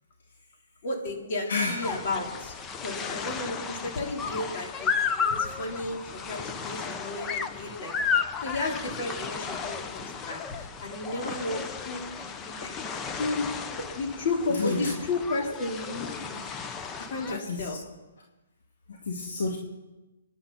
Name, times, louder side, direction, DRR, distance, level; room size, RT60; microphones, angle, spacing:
voice 1, 0.8-2.5 2.8-5.0 5.3-7.9 8.4-13.5 13.8-16.4 17.1-17.8, left 2 dB, 45° left, 0 dB, 3.8 m, -33 dB
voice 2, 1.5-2.0 11.1-11.3 14.5-14.9 17.0-17.8 18.9-19.6, left 3 dB, 70° left, 1 dB, 2.2 m, -31 dB
sound 1, 1.8-17.4, left 6 dB, 15° left, 0.8 m, -33 dB
28.0 x 10.5 x 4.2 m, 1.1 s
hypercardioid pair, 150°, 0 cm